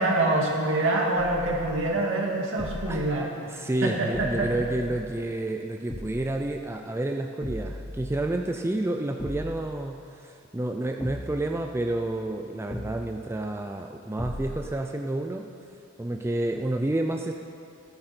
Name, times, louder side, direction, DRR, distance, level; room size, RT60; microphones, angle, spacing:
voice 1, 0.0-3.3 3.8-4.5, right 2 dB, 65° right, -1 dB, 2.1 m, -25 dB
sound 1, 1.2-2.0 2.6-3.2 4.1-5.2 5.9-6.5 7.4-8.5 9.2-9.8 11.0-12.1 12.7-13.3 14.2-14.8, left 1 dB, 15° left, 0.8 m, -38 dB
voice 2, 3.5-15.5 16.0-17.3, right 1 dB, 10° right, 3 dB, 0.4 m, -30 dB
16.5 x 11.0 x 4.4 m, 2.5 s
head